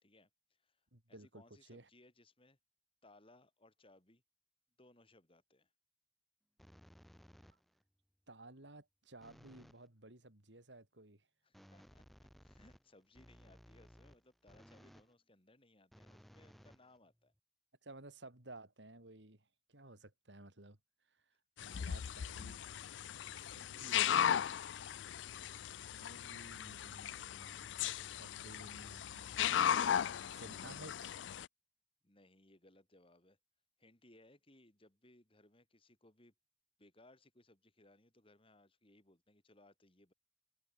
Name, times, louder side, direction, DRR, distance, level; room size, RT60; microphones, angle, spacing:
voice 1, 0.0-2.6 3.0-4.2 4.8-5.7 11.4-17.3 32.0-33.4 33.8-36.3 36.8-40.1, left 1 dB, 30° left, 4.4 m, -66 dB
voice 2, 0.9-1.4 1.7-1.9 8.3-11.3 17.8-20.8 21.1-21.2 21.6-22.6 23.3-24.6 25.9-27.7 28.2-29.4 30.4-31.1, right 2 dB, 75° right, 3.9 m, -55 dB
sound 1, 6.6-7.8 9.2-9.9 11.5-15.1 15.9-17.4, equal, ahead, 5.3 m, -61 dB
sound 2, 21.6-31.5, left 9 dB, 85° left, 0.4 m, -37 dB
head